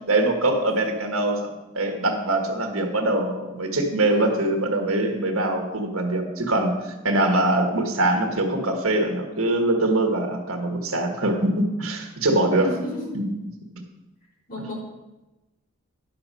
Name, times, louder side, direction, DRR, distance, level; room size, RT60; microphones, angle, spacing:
voice 1, 0.1-12.7 13.1-13.2, right 2 dB, 70° right, 3 dB, 1.6 m, -23 dB
voice 2, 4.1-4.5 12.6-13.3 14.5-14.7, equal, 40° left, -5 dB, 3.7 m, -33 dB
11.0 x 6.9 x 5.6 m, 1.0 s
head